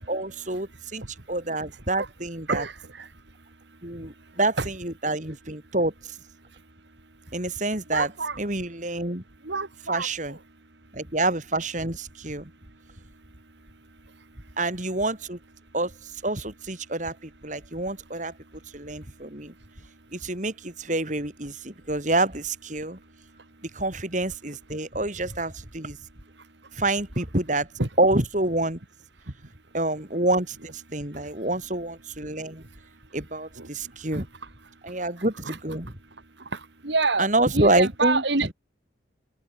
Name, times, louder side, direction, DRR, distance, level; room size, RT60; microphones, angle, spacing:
voice 1, 0.1-2.6 3.8-6.2 7.3-8.1 8.4-9.2 9.9-10.4 10.9-12.5 14.6-15.4 15.7-18.3 18.7-19.5 20.1-23.0 23.6-26.0 26.7-27.7 28.0-28.8 29.7-32.6 33.1-34.3 34.8-35.9 37.2-38.5, right 2 dB, 40° right, 4.0 m, -27 dB
voice 2, 2.5-4.7 6.5-6.6 7.2-7.3 7.9-8.4 9.4-10.4 13.1-13.4 13.6-14.6 19.5-19.6 23.4-23.5 26.3-26.7 27.8-27.9 29.2-29.5 31.1-31.4 32.3-33.0 33.6-34.2 34.7-35.0 35.4-35.6 36.4-37.3 37.5-38.5, right 3 dB, 70° right, 2.1 m, -31 dB
head